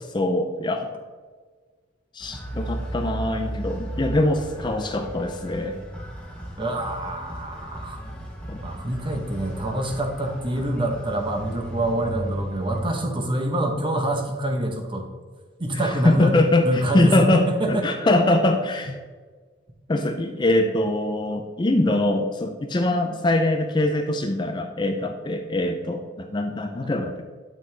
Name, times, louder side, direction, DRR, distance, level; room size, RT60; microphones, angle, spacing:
voice 1, 0.1-0.9 2.1-5.8 8.5-8.6 15.7-19.0 19.9-27.2, left 1 dB, 25° left, 5 dB, 0.4 m, -23 dB
sound 1, 2.2-12.8, right 1 dB, 5° left, 1.2 m, -35 dB
voice 2, 6.6-8.0 8.6-15.1 15.6-17.9 26.8-26.9, right 1 dB, 25° right, 3 dB, 0.9 m, -26 dB
8.8 x 6.2 x 3.3 m, 1.5 s
head